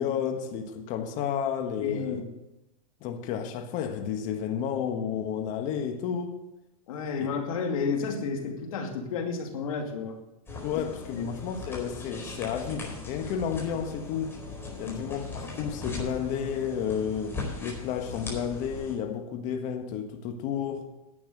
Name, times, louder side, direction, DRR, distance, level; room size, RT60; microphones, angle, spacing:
voice 1, 0.0-2.2 3.0-6.4 7.2-7.3 10.6-14.4 14.8-20.9, left 8 dB, 45° left, 1.4 m, -32 dB
voice 2, 1.8-2.3 6.9-10.2 11.1-11.3 14.8-15.0, left 5 dB, 70° left, 2.5 m, -31 dB
sound 1, 10.5-18.9, left 3 dB, 10° left, 4.6 m, -39 dB
11.0 x 8.6 x 6.7 m
hypercardioid pair, 130°, 18 cm